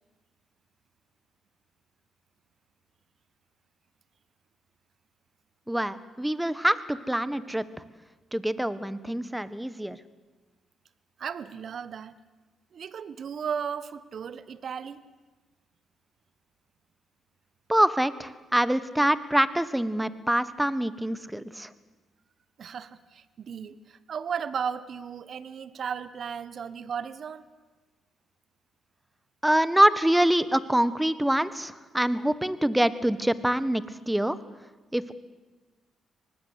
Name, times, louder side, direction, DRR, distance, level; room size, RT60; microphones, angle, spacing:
voice 1, 5.7-7.6 8.3-10.0 17.7-21.7 29.4-34.4 34.9-35.1, right 1 dB, 5° right, 16 dB, 1.4 m, -25 dB
voice 2, 11.2-12.1 12.7-15.0 22.6-27.5, right 7 dB, 60° right, 16 dB, 1.2 m, -35 dB
24.5 x 19.5 x 8.4 m, 1.2 s
supercardioid pair, 55°, 0 cm